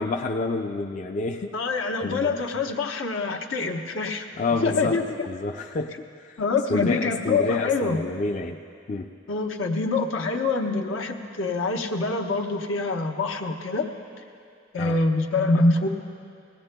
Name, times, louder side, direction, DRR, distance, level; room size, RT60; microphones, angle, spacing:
voice 1, 0.0-1.5 2.0-2.4 4.3-5.0 5.3-6.3 6.7-8.6 8.9-9.1 14.8-15.0, left 3 dB, 40° left, 2 dB, 0.4 m, -28 dB
voice 2, 1.5-4.3 4.6-5.3 6.4-8.1 9.3-13.9 14.7-15.9, left 3 dB, 80° left, 3 dB, 0.9 m, -25 dB
20.5 x 17.5 x 2.2 m, 2.4 s
head